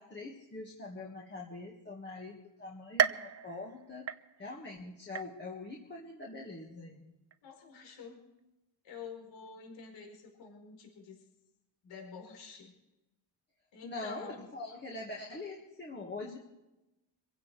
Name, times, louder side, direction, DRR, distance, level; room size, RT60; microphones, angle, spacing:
voice 1, 0.0-4.1 4.4-7.1 13.8-16.4, left 2 dB, 25° left, -1 dB, 1.8 m, -43 dB
sound 1, 3.0-4.7 5.2-5.7 6.2-6.3 7.3-7.4, right 9 dB, 35° right, 0.6 m, -34 dB
voice 2, 7.4-8.2 8.8-11.2 11.8-12.7 13.7-14.4, left 5 dB, 75° left, 1 dB, 4.6 m, -48 dB
26.0 x 16.0 x 3.4 m, 0.98 s
cardioid pair, 145°, 45 cm